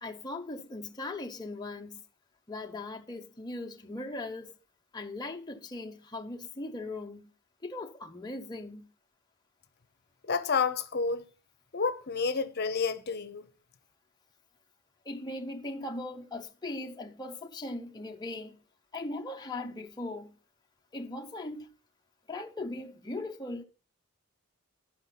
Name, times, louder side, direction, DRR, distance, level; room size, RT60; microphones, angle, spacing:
voice 1, 0.0-2.0 2.5-4.6 4.9-7.3 7.6-8.9 15.0-18.6 18.9-20.4 20.9-21.7 22.3-23.6, left 2 dB, 20° left, 0.7 m, -39 dB
voice 2, 10.2-11.2 11.7-13.5, left 5 dB, 50° left, 0.8 m, -29 dB
12.0 x 5.5 x 5.8 m
head